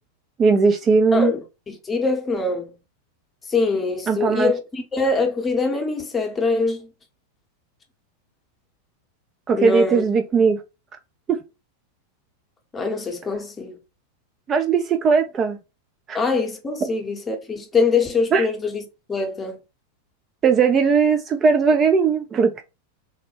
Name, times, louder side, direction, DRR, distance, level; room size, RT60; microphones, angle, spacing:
voice 1, 0.4-1.3 4.1-4.5 9.5-10.6 11.3-11.4 14.5-15.6 16.1-16.2 18.3-18.4 20.4-22.6, right 5 dB, 25° right, 0.3 m, -18 dB
voice 2, 1.1-2.8 3.5-6.9 9.5-10.0 12.7-13.8 16.1-18.8 19.1-19.6, left 4 dB, 20° left, 0.7 m, -23 dB
3.3 x 2.1 x 3.2 m
figure-of-eight pair, 90°, 0 cm